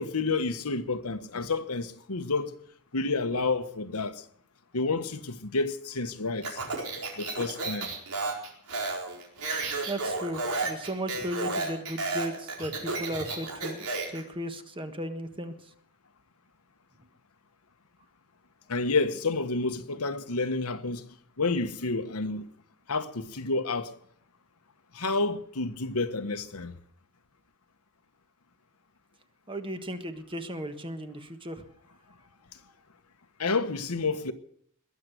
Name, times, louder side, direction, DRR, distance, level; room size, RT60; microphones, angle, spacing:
voice 1, 0.0-2.5 2.9-4.2 4.7-6.6 7.2-7.9 18.7-21.0 21.4-22.5 22.9-23.9 24.9-26.7 33.4-34.3, left 3 dB, 75° left, 1.2 m, -29 dB
Speech, 6.4-14.2, right 3 dB, 85° right, 4.6 m, -32 dB
voice 2, 9.9-13.9 14.1-15.5 29.5-31.6, equal, 25° right, 1.5 m, -35 dB
21.0 x 7.7 x 8.0 m
head